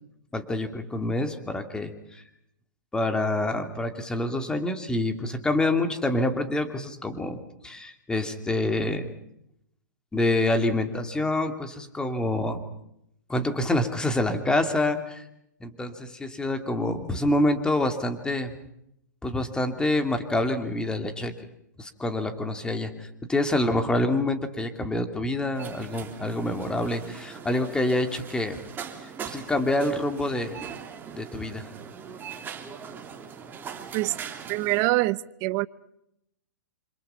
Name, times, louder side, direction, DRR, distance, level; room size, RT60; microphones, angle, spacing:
voice 1, 0.3-2.2 2.9-9.1 10.1-12.6 13.3-15.2 15.6-18.5 19.2-21.3 21.8-28.6 29.3-30.6 31.1-31.7, left 1 dB, 10° left, 7 dB, 2.7 m, -27 dB
sound 1, 25.5-34.8, right 7 dB, 20° right, 3.3 m, -41 dB
voice 2, 34.5-35.7, right 21 dB, 40° right, 17 dB, 0.9 m, -24 dB
27.5 x 26.5 x 5.7 m, 0.78 s
hypercardioid pair, 125°, 10 cm